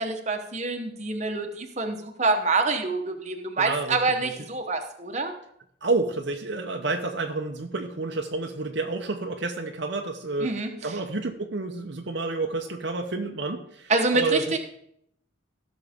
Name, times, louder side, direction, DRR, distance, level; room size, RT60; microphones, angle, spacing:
voice 1, 0.0-5.3 10.4-10.7 13.9-14.6, right 3 dB, 35° right, 4 dB, 1.1 m, -26 dB
voice 2, 3.6-4.3 5.8-14.4, right 3 dB, 60° right, 3 dB, 0.8 m, -30 dB
16.0 x 6.1 x 3.6 m, 0.72 s
head